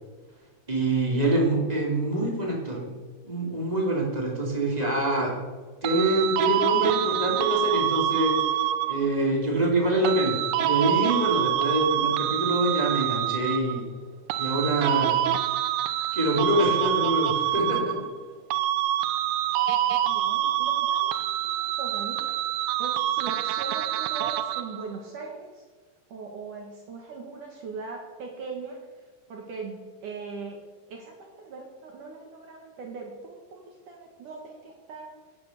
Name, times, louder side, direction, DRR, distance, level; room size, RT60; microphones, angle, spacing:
voice 1, 0.7-2.9 3.2-5.4 5.8-13.9 14.3-15.2 15.5-15.6 16.1-18.1, right 1 dB, 15° right, -2 dB, 1.3 m, -25 dB
sound 1, 5.8-9.2 10.0-13.8 14.3-18.2 18.5-24.8, right 12 dB, 80° right, 2.7 m, -26 dB
voice 2, 20.0-22.4 22.8-25.6 26.1-28.9 29.3-35.1, right 4 dB, 60° right, 1 dB, 2.3 m, -40 dB
16.0 x 10.5 x 6.6 m, 1.4 s
omnidirectional pair, 5.8 m